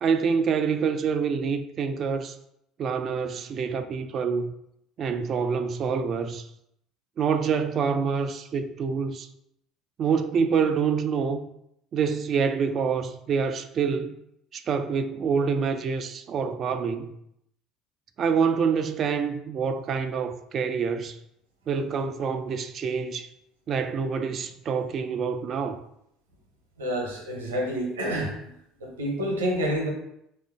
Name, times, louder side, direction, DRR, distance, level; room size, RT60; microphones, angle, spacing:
voice 1, 0.0-2.3 2.8-4.5 5.0-6.5 7.2-9.3 10.0-11.4 11.9-14.2 14.5-17.1 18.2-21.2 21.7-23.3 23.7-25.8, right 6 dB, 45° right, 0.3 m, -26 dB
voice 2, 26.8-28.5 28.8-29.9, equal, 80° right, 0.8 m, -28 dB
3.4 x 2.5 x 3.4 m
figure-of-eight pair, 65°, 0 cm